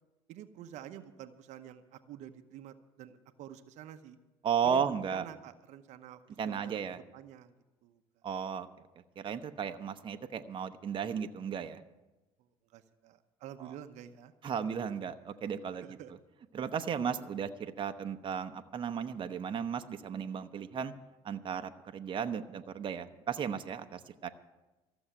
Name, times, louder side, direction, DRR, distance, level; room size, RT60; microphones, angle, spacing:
voice 1, 0.3-4.2 4.6-7.5 7.8-8.0 12.4-14.3 15.8-16.1, right 10 dB, 65° right, 9 dB, 0.9 m, -49 dB
voice 2, 4.4-5.3 6.4-7.0 8.2-8.7 9.2-11.8 13.6-13.7 14.4-15.8 16.5-20.9 21.2-24.3, right 7 dB, 40° right, 7 dB, 0.9 m, -35 dB
14.5 x 7.1 x 10.0 m, 1.1 s
supercardioid pair, 80°, 13 cm